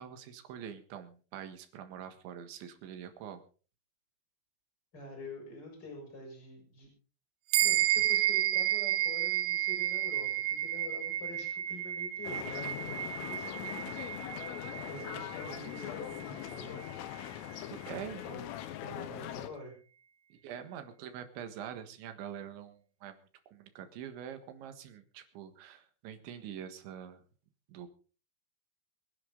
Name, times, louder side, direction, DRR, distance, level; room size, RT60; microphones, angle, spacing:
voice 1, 0.0-3.4 17.3-18.2 20.3-23.2 23.5-27.2 27.7-27.9, right 9 dB, 70° right, 8 dB, 3.7 m, -45 dB
voice 2, 4.9-6.9 7.6-14.1 14.6-16.8 18.2-18.4 18.7-19.7, left 2 dB, 20° left, 1 dB, 7.1 m, -46 dB
sound 1, 7.5-17.3, right 13 dB, 90° right, 2.2 m, -32 dB
sound 2, 12.2-19.5, left 12 dB, 85° left, 3.7 m, -41 dB
25.0 x 10.5 x 3.9 m, 0.38 s
omnidirectional pair, 5.8 m